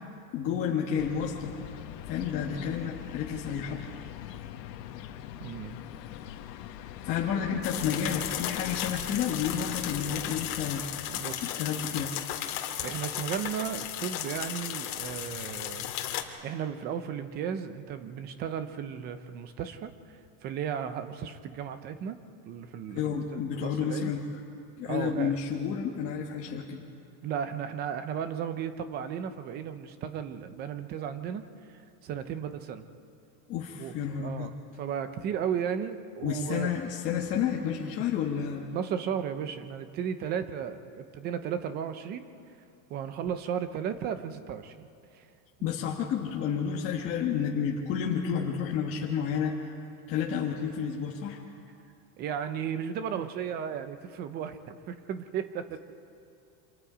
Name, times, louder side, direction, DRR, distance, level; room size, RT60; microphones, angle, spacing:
voice 1, 0.3-1.5 2.1-3.8 4.9-5.0 7.0-10.8 11.4-12.1 22.9-24.2 24.8-26.8 33.5-34.5 36.2-38.6 45.6-49.6 50.1-51.4, left 7 dB, 30° left, -2 dB, 1.3 m, -30 dB
sound 1, 1.0-10.8, left 11 dB, 80° left, 1.5 m, -43 dB
voice 2, 5.4-5.8 11.1-11.6 12.8-15.9 16.4-22.2 22.5-24.1 24.8-25.3 27.2-32.9 33.8-36.7 38.7-42.3 42.9-44.8 45.1-45.3 52.2-55.8, right 8 dB, 20° right, 10 dB, 0.6 m, -35 dB
sound 2, 7.6-16.2, left 11 dB, 50° left, 2.1 m, -35 dB
29.0 x 26.0 x 5.0 m, 2.6 s
supercardioid pair, 175°, 49 cm